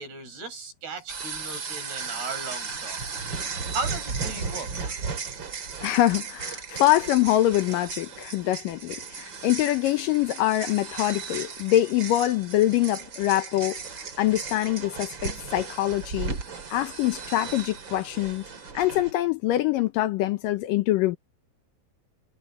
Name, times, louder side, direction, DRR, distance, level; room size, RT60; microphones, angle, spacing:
voice 1, 0.0-3.0 3.7-5.0, right 3 dB, 90° right, 9.1 m, -36 dB
sound 1, 1.1-19.1, right 5 dB, 35° right, 2.8 m, -35 dB
voice 2, 5.8-16.4 16.7-18.4 18.7-21.2, left 15 dB, 75° left, 2.2 m, -24 dB
omnidirectional pair, 4.5 m